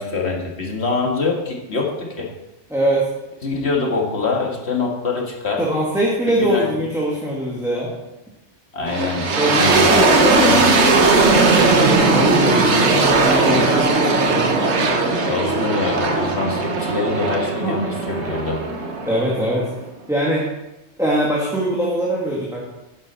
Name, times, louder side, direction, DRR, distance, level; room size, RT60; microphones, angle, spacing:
voice 1, 0.0-2.3 3.4-5.6 6.3-6.7 8.7-10.1 10.4-11.0 13.5-13.6 15.2-18.6, left 3 dB, 60° left, 0 dB, 2.1 m, -24 dB
voice 2, 2.7-3.1 5.6-7.9 9.4-10.6 11.4-14.5 17.6-17.8 19.1-19.7 20.1-20.5 21.0-22.6, right 1 dB, ahead, -5 dB, 1.9 m, -22 dB
sound 1, 8.9-19.8, right 3 dB, 65° right, 1.4 m, -18 dB
10.5 x 10.0 x 4.3 m, 0.99 s
omnidirectional pair, 1.3 m